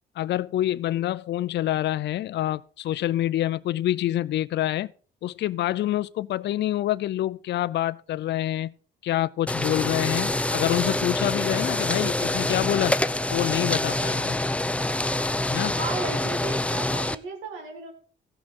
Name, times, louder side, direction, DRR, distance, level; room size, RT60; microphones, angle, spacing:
voice 1, 0.2-4.9 5.2-8.7 9.0-13.0 13.3-14.4 15.5-15.7, left 13 dB, 60° left, 0.4 m, -26 dB
sound 1, 9.5-17.1, left 1 dB, 5° left, 0.4 m, -26 dB
voice 2, 15.8-17.9, right 3 dB, 85° right, 1.8 m, -34 dB
15.5 x 6.2 x 4.2 m
cardioid pair, 90°, 20 cm